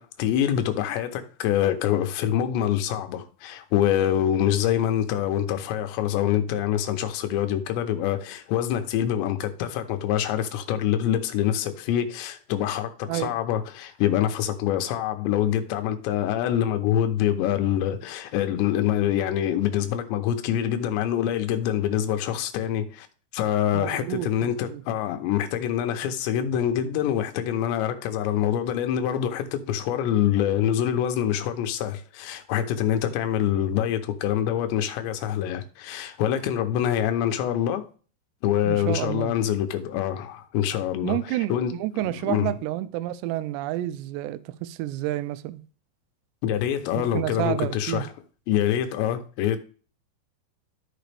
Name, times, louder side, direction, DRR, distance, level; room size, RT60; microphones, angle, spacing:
voice 1, 0.0-23.1 23.3-37.9 38.4-41.2 41.5-41.7 42.0-42.6 46.4-48.1 48.5-49.6, left 10 dB, 85° left, 3.1 m, -25 dB
voice 2, 23.7-24.8 38.7-39.3 41.0-45.6 47.0-48.1, right 15 dB, 85° right, 2.7 m, -29 dB
13.5 x 5.1 x 3.4 m
omnidirectional pair, 5.0 m